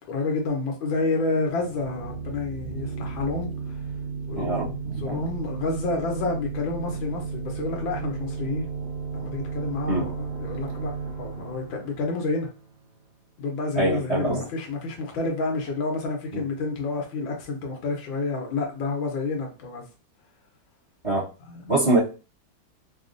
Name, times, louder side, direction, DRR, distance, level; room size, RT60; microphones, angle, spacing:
voice 1, 0.1-3.8 4.3-8.7 9.1-10.9 11.2-12.5 13.4-19.8 21.5-21.8, left 3 dB, 80° left, 1.6 m, -29 dB
sound 1, 1.5-13.0, right 5 dB, 60° right, 1.5 m, -34 dB
voice 2, 4.3-5.2 9.9-10.1 13.8-14.4 16.3-16.4 21.0-21.3 21.7-22.0, right 2 dB, 25° right, 1.0 m, -24 dB
4.2 x 2.2 x 2.5 m
omnidirectional pair, 2.1 m